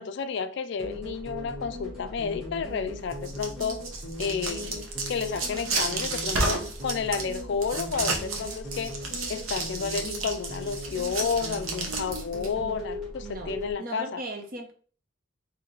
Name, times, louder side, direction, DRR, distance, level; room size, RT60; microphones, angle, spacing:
voice 1, 0.0-3.8 4.2-9.0 9.3-14.2, left 5 dB, 55° left, 0.3 m, -31 dB
sound 1, 0.8-13.7, left 1 dB, 5° right, 1.4 m, -39 dB
sound 2, 3.1-12.5, right 3 dB, 80° right, 0.8 m, -32 dB
voice 2, 5.4-5.9 13.2-14.7, right 1 dB, 40° right, 0.6 m, -39 dB
3.7 x 2.7 x 3.0 m
head